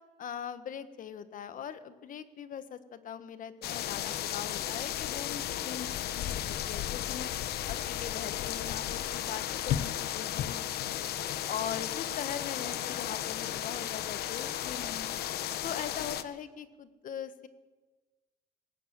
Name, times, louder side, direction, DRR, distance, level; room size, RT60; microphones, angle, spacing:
voice 1, 0.2-7.3 7.7-11.0 11.5-15.1 15.6-17.5, left 8 dB, 50° left, 11 dB, 1.4 m, -41 dB
sound 1, 3.6-16.2, left 11 dB, 70° left, 1.1 m, -34 dB
19.5 x 17.5 x 7.6 m, 1.3 s
cardioid pair, 110°, 17 cm